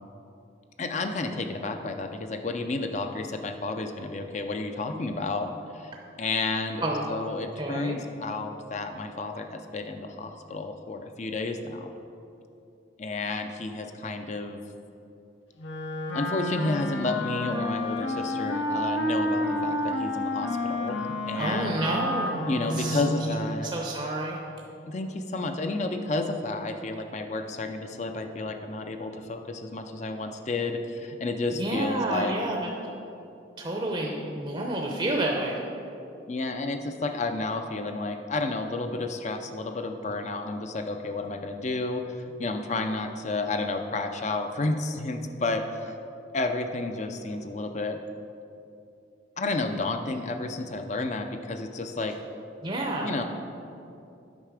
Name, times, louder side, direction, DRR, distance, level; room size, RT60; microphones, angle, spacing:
voice 1, 0.8-5.5 5.7-5.9 6.2-6.8 7.1-11.9 13.0-14.6 16.1-21.8 22.5-23.7 24.9-32.3 36.3-45.9 46.3-48.0 49.4-52.2 53.0-53.2, left 3 dB, 35° left, 6 dB, 0.5 m, -31 dB
voice 2, 7.6-8.0 21.4-23.0 23.6-24.4 31.5-32.7 33.6-35.6 52.6-53.1, right 1 dB, 25° right, -1 dB, 0.6 m, -29 dB
Wind instrument woodwind instrument, 15.6-23.5, left 1 dB, 75° left, 0.8 m, -30 dB
8.9 x 5.7 x 4.9 m, 2.7 s
head